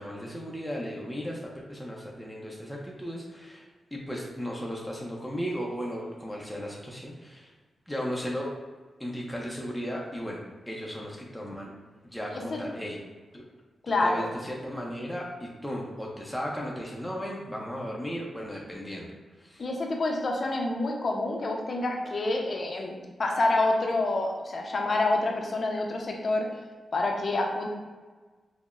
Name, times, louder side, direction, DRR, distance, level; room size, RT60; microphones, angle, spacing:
voice 1, 0.0-7.5 7.9-8.6 9.0-11.7 12.0-13.0 13.3-13.4 14.0-19.6, equal, ahead, -3 dB, 0.5 m, -36 dB
voice 2, 13.8-14.2 19.6-26.5 26.9-27.7, left 2 dB, 45° left, 1 dB, 0.6 m, -27 dB
5.5 x 2.0 x 2.4 m, 1.4 s
wide cardioid pair, 110°, 0 cm